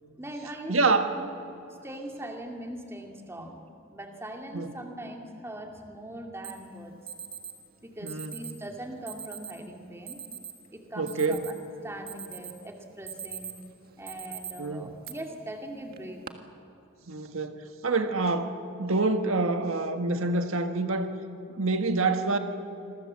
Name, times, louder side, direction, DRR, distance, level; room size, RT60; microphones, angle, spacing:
voice 1, 0.2-1.3 1.7-3.6 3.9-6.9 7.8-10.2 10.7-11.5 11.8-13.7 14.0-16.2, right 1 dB, 10° right, 2 dB, 2.4 m, -41 dB
voice 2, 0.7-1.1 4.5-4.7 8.0-8.3 11.0-11.4 14.6-14.9 17.1-17.5 17.8-21.1 21.6-22.4, right 3 dB, 75° right, 6 dB, 1.7 m, -26 dB
Alarm, 6.4-6.5 7.1-7.5 8.1-8.6 9.1-9.5 10.1-10.5 10.9-11.7 12.1-12.6 12.9-13.6 14.1-14.5 15.0-15.1 15.9-16.3, right 8 dB, 45° right, 1.6 m, -40 dB
28.0 x 22.5 x 7.6 m, 2.9 s
head